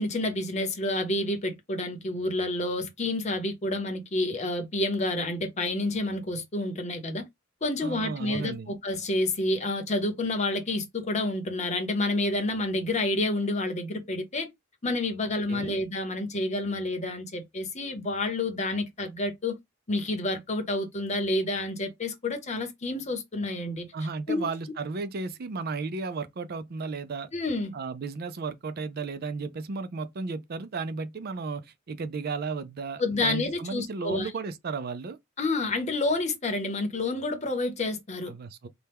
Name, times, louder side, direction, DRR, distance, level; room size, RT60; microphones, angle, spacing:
voice 1, 0.0-7.3 7.6-14.5 14.8-19.6 19.9-23.9 24.3-24.5 27.3-27.7 33.0-34.3 35.4-38.3, left 2 dB, 35° left, 0.8 m, -29 dB
voice 2, 7.8-8.7 15.5-15.8 23.9-27.3 27.7-35.2 38.3-38.7, right 4 dB, 50° right, 0.4 m, -34 dB
4.3 x 2.2 x 3.4 m
head